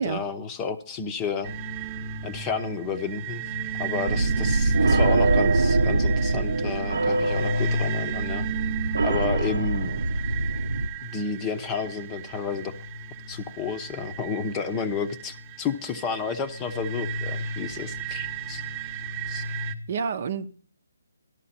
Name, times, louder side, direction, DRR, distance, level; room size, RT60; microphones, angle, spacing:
voice 1, 0.0-1.5 2.2-3.4 3.8-8.5 9.0-10.1 11.0-12.7 13.3-18.6 19.3-19.4, left 5 dB, 15° left, 0.9 m, -31 dB
sound 1, 1.4-19.7, right 4 dB, 20° right, 1.1 m, -34 dB
sound 2, 4.1-10.9, right 2 dB, 80° right, 0.9 m, -24 dB
voice 2, 19.9-20.5, right 6 dB, 45° right, 0.8 m, -29 dB
12.5 x 12.5 x 4.3 m
hypercardioid pair, 160°, 0 cm